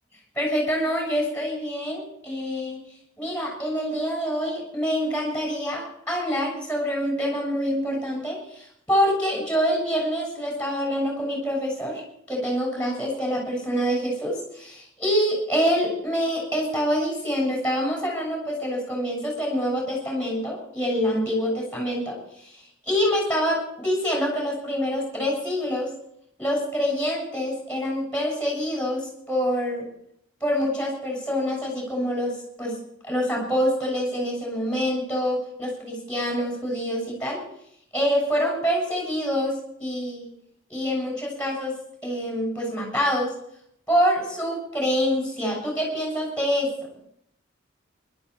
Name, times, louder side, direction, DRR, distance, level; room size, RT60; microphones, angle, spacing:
voice 1, 0.4-2.8 3.2-12.0 12.3-25.9 26.4-29.9 30.4-32.8 33.0-37.4 37.9-40.3 40.7-41.8 42.0-43.3 43.9-46.7, equal, 5° left, 0 dB, 6.9 m, -26 dB
25.0 x 12.0 x 4.8 m, 0.71 s
head